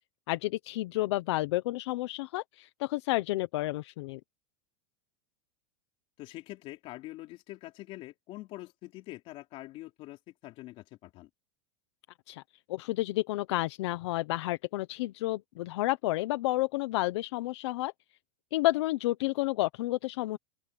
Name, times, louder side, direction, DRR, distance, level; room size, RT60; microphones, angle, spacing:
voice 1, 0.3-4.2 12.3-12.4 12.7-17.9 18.5-20.4, left 18 dB, 65° left, 1.0 m, -30 dB
voice 2, 6.2-11.3, left 17 dB, 35° left, 4.1 m, -45 dB
open air
supercardioid pair, 160°, 16 cm